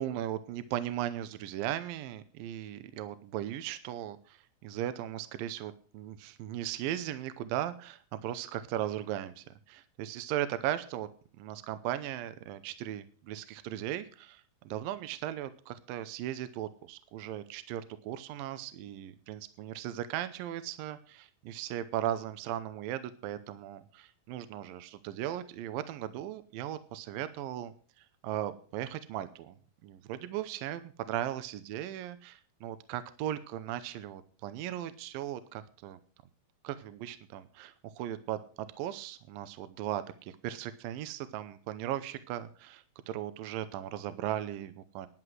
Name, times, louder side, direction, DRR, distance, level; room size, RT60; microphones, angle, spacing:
voice 1, 0.0-11.1 11.4-29.6 29.8-36.0 36.6-45.1, right 12 dB, 80° right, 12 dB, 2.4 m, -37 dB
11.0 x 9.8 x 6.2 m, 0.41 s
omnidirectional pair, 4.3 m